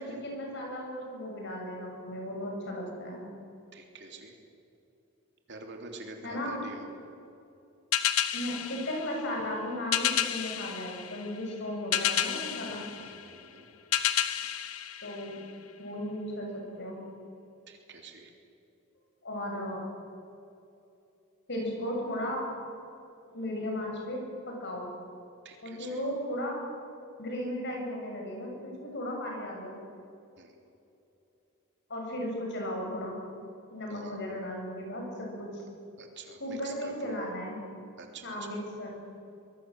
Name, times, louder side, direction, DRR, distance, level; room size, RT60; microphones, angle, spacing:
voice 1, 0.0-3.2 6.2-6.6 8.3-12.9 15.0-15.4 15.8-17.0 19.2-19.8 21.5-22.5 23.3-24.9 25.6-26.6 27.2-29.7 31.9-33.2 33.7-35.6 36.4-37.6 38.2-38.9, left 1 dB, 50° left, 0 dB, 7.6 m, -35 dB
voice 2, 3.7-4.4 5.5-6.9 12.6-13.7 17.7-18.3 25.4-26.0 30.4-30.6 33.9-34.2 36.0-37.1 38.0-38.6, right 3 dB, 50° right, 3 dB, 3.4 m, -47 dB
sound 1, 7.9-15.8, left 10 dB, 70° left, 1.3 m, -31 dB
24.5 x 22.0 x 8.0 m, 2.8 s
head